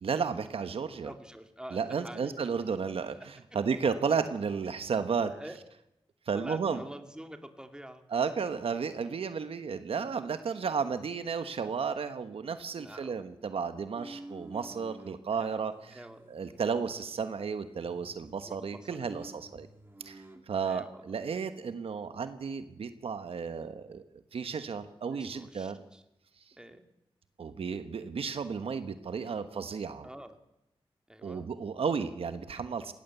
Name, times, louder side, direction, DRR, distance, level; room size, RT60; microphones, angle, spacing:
voice 1, 0.0-1.1 1.7-3.2 3.5-5.3 6.3-6.8 8.1-15.7 16.3-19.7 20.0-24.0 24.3-25.8 27.4-30.1 31.2-32.9, right 6 dB, 85° right, 10 dB, 1.2 m, -33 dB
voice 2, 1.0-2.4 5.3-5.6 6.3-8.0 12.8-13.2 15.4-15.6 15.9-16.4 18.4-19.2 20.6-21.2 25.1-26.0 26.5-26.9 30.0-30.4 31.1-31.5, right 1 dB, 10° right, 6 dB, 2.5 m, -47 dB
sound 1, 13.9-15.2 15.7-17.5 17.7-20.4, right 1 dB, 25° right, 2.6 m, -50 dB
19.0 x 18.5 x 8.2 m, 0.84 s
wide cardioid pair, 70°, 10 cm